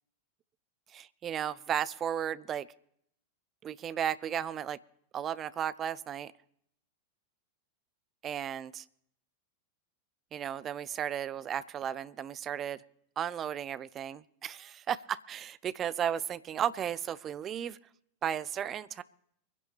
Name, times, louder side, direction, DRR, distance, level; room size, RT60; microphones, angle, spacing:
voice 1, 0.9-2.7 3.6-4.8 5.1-6.3 8.2-8.8 10.3-12.8 13.2-17.8 18.2-19.0, right 9 dB, 25° right, 18 dB, 0.5 m, -34 dB
24.0 x 10.5 x 3.3 m, 0.70 s
figure-of-eight pair, 90°, 0 cm